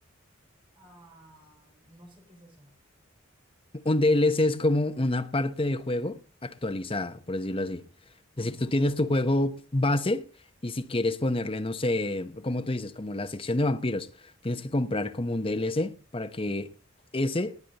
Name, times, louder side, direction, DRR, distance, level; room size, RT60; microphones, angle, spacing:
voice 1, 0.7-2.8 8.4-8.7, right 1 dB, 25° right, 5.8 m, -54 dB
voice 2, 3.7-7.9 8.4-10.3 10.6-14.1 14.4-16.7 17.1-17.5, left 1 dB, 30° left, 0.9 m, -27 dB
19.0 x 9.5 x 4.1 m
head